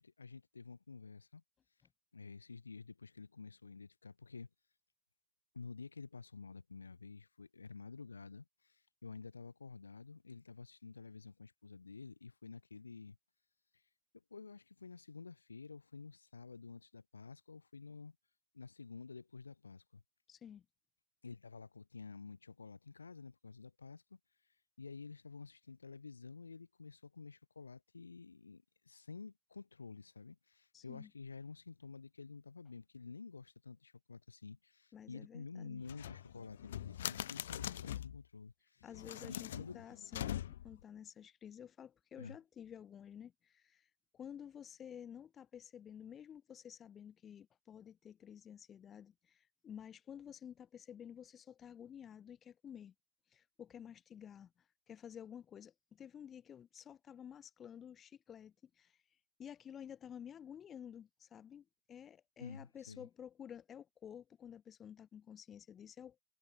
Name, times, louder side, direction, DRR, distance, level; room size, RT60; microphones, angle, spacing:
voice 1, 0.0-1.4 2.1-4.5 5.5-13.2 14.3-18.2 18.5-20.0 21.2-24.2 24.8-38.9 39.2-39.8 42.2-42.4 62.4-63.1, left 4 dB, 75° left, 2.6 m, -51 dB
voice 2, 20.3-20.7 30.7-31.1 34.9-35.8 38.8-52.9 53.3-59.0 59.4-66.2, left 9 dB, 25° left, 2.2 m, -52 dB
sound 1, 35.8-38.2 38.9-40.8, left 12 dB, 60° left, 0.9 m, -43 dB
figure-of-eight pair, 90°, 0 cm